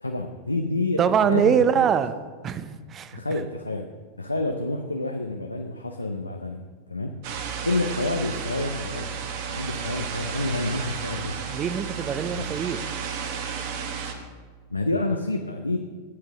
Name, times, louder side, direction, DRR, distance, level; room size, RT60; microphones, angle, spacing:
voice 1, 0.0-2.0 3.1-3.9 4.2-6.6 6.9-7.2 7.6-9.2 9.5-11.4 12.3-12.5 14.7-15.8, left 2 dB, 85° left, 5 dB, 0.6 m, -28 dB
voice 2, 1.0-2.1 2.4-3.2 11.5-12.8, right 7 dB, 25° right, 13 dB, 0.6 m, -23 dB
sound 1, 7.2-14.1, right 6 dB, 50° right, 1.2 m, -33 dB
14.5 x 9.0 x 3.6 m, 1.5 s
figure-of-eight pair, 90°, 0 cm